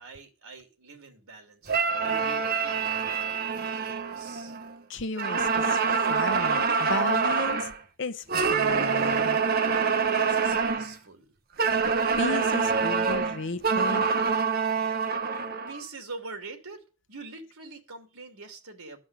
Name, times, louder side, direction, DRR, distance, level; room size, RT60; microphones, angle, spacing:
voice 1, 0.0-3.0 3.7-4.6 9.9-11.3 15.1-16.8 17.1-19.0, right 3 dB, 80° right, 3.0 m, -44 dB
sound 1, 1.7-4.8 5.2-7.8 8.3-10.9 11.6-15.8, right 5 dB, 45° right, 0.9 m, -26 dB
voice 2, 4.9-5.8 6.1-7.7 8.0-9.4 11.7-11.8 12.2-14.0, left 3 dB, 55° left, 0.8 m, -34 dB
14.0 x 5.4 x 9.0 m
head